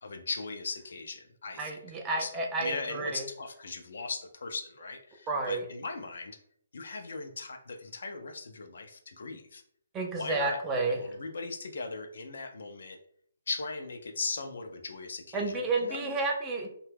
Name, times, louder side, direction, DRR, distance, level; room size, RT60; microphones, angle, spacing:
voice 1, 0.0-1.8 2.1-2.3 2.6-6.4 6.7-9.6 10.1-10.6 10.9-13.0 13.5-16.2, left 4 dB, 70° left, 5 dB, 0.4 m, -38 dB
voice 2, 1.6-3.3 5.3-5.7 9.9-11.0 15.3-16.7, right 3 dB, 15° right, 1 dB, 0.4 m, -31 dB
2.8 x 2.2 x 3.3 m, 0.65 s
hypercardioid pair, 155°, 0 cm